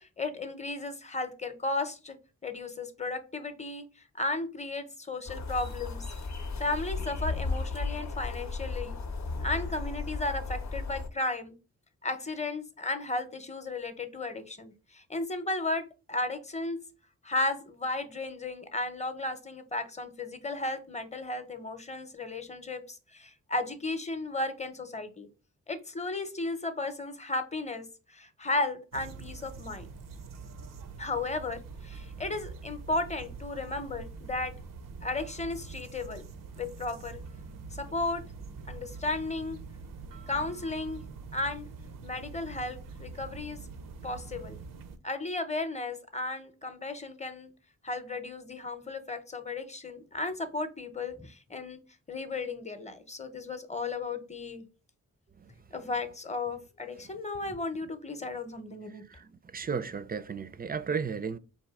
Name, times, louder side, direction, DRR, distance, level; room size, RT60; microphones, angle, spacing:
voice 1, 0.0-2.2 2.4-3.9 4.2-6.0 6.6-9.0 9.4-11.5 12.0-16.8 17.2-25.3 25.7-29.9 31.0-34.5 35.0-36.2 36.6-37.2 37.7-38.2 38.7-39.6 40.3-41.0 41.3-41.7 42.0-43.6 44.0-44.6 45.0-47.5 47.8-51.8 52.1-54.6 55.7-59.0, left 2 dB, 20° left, 0.7 m, -34 dB
sound 1, 5.3-11.1, left 3 dB, 60° left, 0.7 m, -35 dB
sound 2, 28.9-45.0, right 4 dB, 90° right, 0.6 m, -44 dB
voice 2, 59.1-61.4, right 6 dB, 30° right, 0.4 m, -34 dB
4.2 x 2.7 x 3.5 m
cardioid pair, 65°, 32 cm